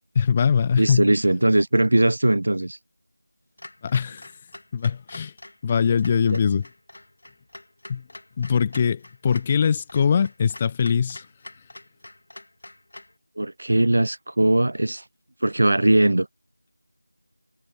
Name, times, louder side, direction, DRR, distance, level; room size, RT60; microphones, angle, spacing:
voice 1, 0.2-1.1 3.8-4.3 4.7-5.3 5.6-6.7 7.9-8.0 8.4-11.2, left 6 dB, 15° left, 0.4 m, -22 dB
voice 2, 0.8-2.8 6.3-6.4 13.4-15.0 15.4-16.3, right 1 dB, 55° right, 0.9 m, -20 dB
Clock, 3.6-13.2, left 1 dB, 55° left, 6.6 m, -45 dB
figure-of-eight pair, 170°, 0 cm